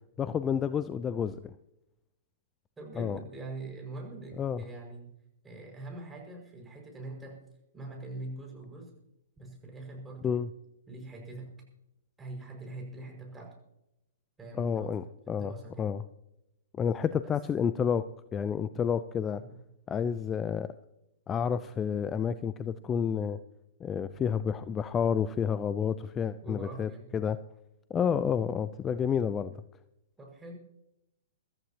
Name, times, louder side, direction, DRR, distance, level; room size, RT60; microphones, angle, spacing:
voice 1, 0.2-1.5 3.0-3.2 4.4-4.6 10.2-10.5 14.6-15.5 15.8-16.0 16.8-19.4 19.9-20.7 21.3-23.4 23.8-27.4 27.9-29.6, left 7 dB, 20° left, 13 dB, 0.6 m, -30 dB
voice 2, 2.8-5.1 5.4-7.4 7.7-8.9 9.4-10.4 10.9-11.6 12.2-13.6 14.4-15.0 15.3-15.9 17.2-17.4 19.3-19.6 26.4-27.1 30.2-30.5, right 2 dB, 10° right, 0 dB, 5.7 m, -43 dB
23.0 x 14.0 x 2.9 m, 0.86 s
hypercardioid pair, 115°, 0 cm